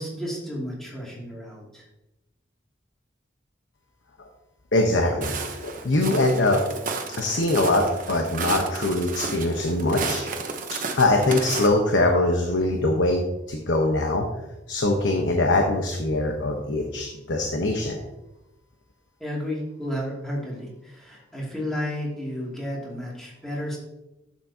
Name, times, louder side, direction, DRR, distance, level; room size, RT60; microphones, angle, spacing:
voice 1, 0.0-1.8 19.2-23.8, equal, ahead, -5 dB, 2.5 m, -32 dB
voice 2, 4.7-5.4 5.6-6.6 7.2-10.2 11.0-13.2 13.5-14.3 14.7-18.0, left 2 dB, 75° left, 2 dB, 1.0 m, -22 dB
Walk footsteps, 5.2-11.7, right 4 dB, 45° right, 1.0 m, -32 dB
11.0 x 7.5 x 2.8 m, 0.98 s
head